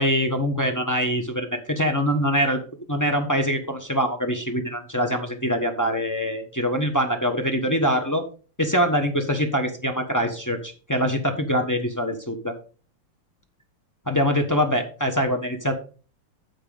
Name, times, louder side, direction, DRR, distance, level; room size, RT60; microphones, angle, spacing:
voice 1, 0.0-2.6 2.9-8.2 8.6-12.6 14.1-15.7, equal, 15° left, 3 dB, 0.7 m, -24 dB
9.6 x 7.3 x 3.9 m, 0.37 s
omnidirectional pair, 2.4 m